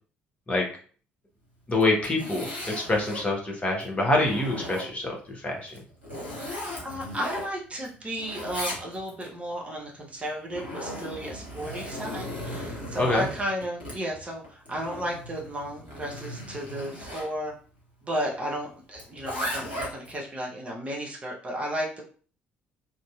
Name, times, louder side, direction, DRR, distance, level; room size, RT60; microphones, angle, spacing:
Zipper (clothing), 1.7-3.3 3.8-5.2 5.7-7.9 8.2-9.3 10.2-17.3 19.0-20.2, left 1 dB, 85° left, 0.9 m, -37 dB
voice 1, 1.7-5.7 13.0-13.3, left 2 dB, 25° left, 0 dB, 1.1 m, -26 dB
voice 2, 6.8-17.5 18.0-22.0, equal, 25° right, -2 dB, 0.9 m, -33 dB
2.9 x 2.5 x 2.4 m, 0.41 s
figure-of-eight pair, 50°, 5 cm